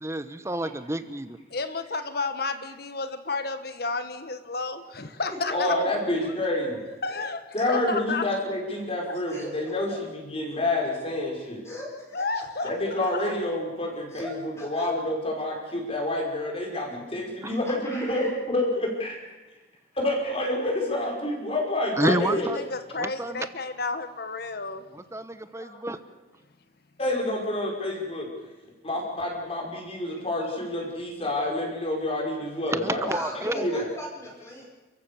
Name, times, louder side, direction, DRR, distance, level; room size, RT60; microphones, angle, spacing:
voice 1, 0.0-1.4 17.4-17.5 22.0-22.6 23.0-23.5 24.9-26.0 32.7-33.7, right 1 dB, 15° right, 12 dB, 1.0 m, -29 dB
voice 2, 1.5-5.8 7.0-7.4 7.7-8.3 9.1-9.2 12.1-12.7 13.2-13.3 22.0-24.8, left 3 dB, 55° left, 9 dB, 1.3 m, -31 dB
voice 3, 5.5-6.8 7.5-11.6 12.6-19.2 20.0-22.6 25.6-25.9 27.0-28.3 28.8-33.1 33.5-33.9, left 1 dB, 30° left, 1 dB, 5.5 m, -28 dB
voice 4, 11.6-12.4 14.1-14.9 17.6-18.3 33.0-34.7, left 1 dB, 15° left, -3 dB, 5.2 m, -39 dB
29.5 x 15.0 x 7.1 m, 1.1 s
head